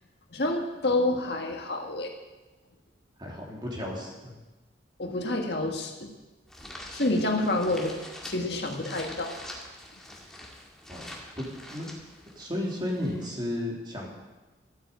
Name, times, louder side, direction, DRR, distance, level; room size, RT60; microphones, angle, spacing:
voice 1, 0.3-2.1 5.0-6.1 6.9-7.9 8.2-9.4, left 2 dB, 60° left, 3 dB, 1.7 m, -28 dB
voice 2, 3.2-4.3 10.9-11.1 11.4-11.9 12.3-14.1, left 1 dB, 25° right, -2 dB, 3.2 m, -33 dB
sound 1, 6.5-13.3, left 1 dB, 5° left, 2.1 m, -45 dB
13.5 x 9.2 x 8.1 m, 1.1 s
head